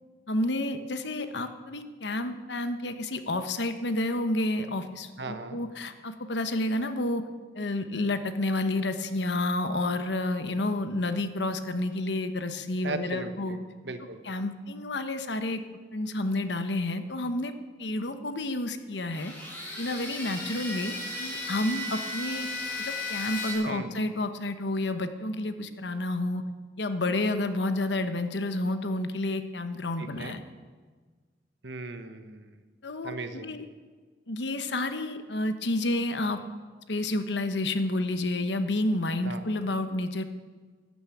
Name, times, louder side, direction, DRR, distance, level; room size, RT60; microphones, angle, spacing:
voice 1, 0.3-7.2 7.6-13.6 14.2-15.6 15.9-17.5 17.8-19.3 19.8-22.5 22.8-26.4 26.8-30.4 32.8-33.1 33.4-33.7 34.3-36.4 36.9-40.2, left 2 dB, 75° left, 9 dB, 1.1 m, -30 dB
voice 2, 5.2-5.6 12.8-13.6 13.8-14.2 23.7-24.0 30.0-30.3 31.6-32.5 33.0-33.5 39.2-39.4, right 3 dB, 75° right, 9 dB, 1.2 m, -37 dB
sound 1, 19.1-23.5, left 2 dB, 10° left, 4.8 m, -35 dB
12.5 x 10.5 x 8.5 m, 1.5 s
head